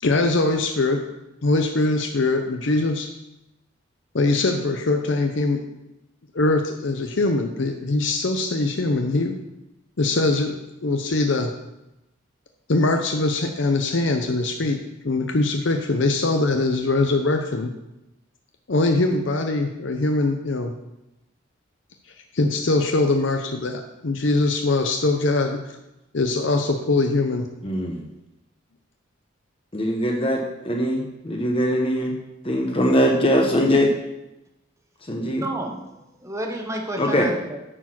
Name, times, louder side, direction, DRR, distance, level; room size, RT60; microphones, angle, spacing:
voice 1, 0.0-1.0 1.4-3.1 4.1-5.6 6.3-9.4 10.0-10.6 10.8-11.5 12.7-14.8 15.0-17.7 18.7-20.7 22.3-25.8 26.1-27.5, left 2 dB, 60° left, 4 dB, 0.7 m, -22 dB
voice 2, 27.6-28.0 29.7-32.1 32.4-33.9 35.1-35.4 37.0-37.3, equal, 25° left, 0 dB, 0.9 m, -21 dB
voice 3, 35.2-37.6, right 1 dB, 15° right, 2 dB, 1.0 m, -31 dB
9.9 x 4.7 x 6.0 m, 0.93 s
head